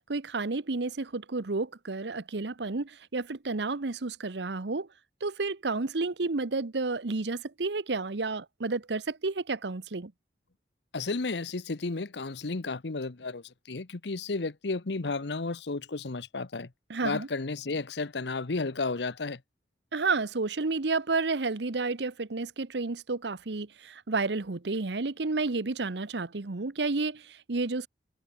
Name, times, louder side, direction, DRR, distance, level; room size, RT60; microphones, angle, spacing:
voice 1, 0.1-4.9 5.2-10.1 16.9-17.3 19.9-27.9, right 3 dB, 70° right, 0.9 m, -31 dB
voice 2, 10.9-16.7 17.0-19.4, left 3 dB, 70° left, 0.9 m, -33 dB
head